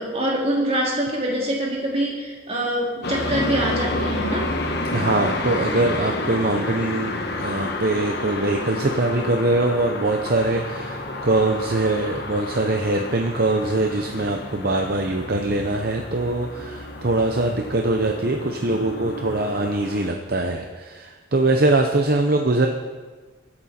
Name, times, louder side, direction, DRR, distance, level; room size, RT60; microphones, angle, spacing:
voice 1, 0.0-4.5, right 1 dB, 30° right, -2 dB, 3.0 m, -24 dB
sound 1, 3.0-20.1, left 2 dB, 55° left, 1.3 m, -30 dB
voice 2, 4.9-22.7, right 2 dB, 50° right, 3 dB, 0.8 m, -22 dB
22.0 x 8.8 x 4.4 m, 1.3 s
head